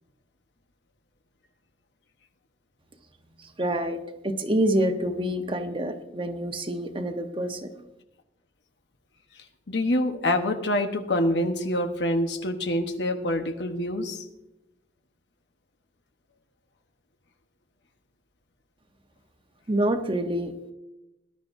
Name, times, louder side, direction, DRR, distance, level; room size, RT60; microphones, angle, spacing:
voice 1, 3.4-7.7 19.7-20.5, right 1 dB, 30° right, 6 dB, 1.0 m, -27 dB
voice 2, 9.7-14.3, left 1 dB, 70° left, 6 dB, 1.2 m, -26 dB
19.0 x 11.5 x 2.7 m, 0.94 s
head